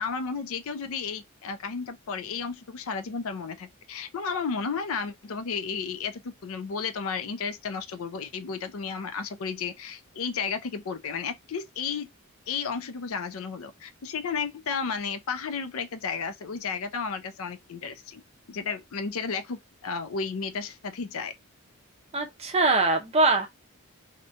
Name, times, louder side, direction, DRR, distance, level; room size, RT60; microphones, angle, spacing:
voice 1, 0.0-12.1 12.5-18.2 18.5-21.3, left 5 dB, 75° left, 0.4 m, -33 dB
voice 2, 22.1-23.5, right 3 dB, 30° right, 0.5 m, -22 dB
2.7 x 2.2 x 2.7 m
head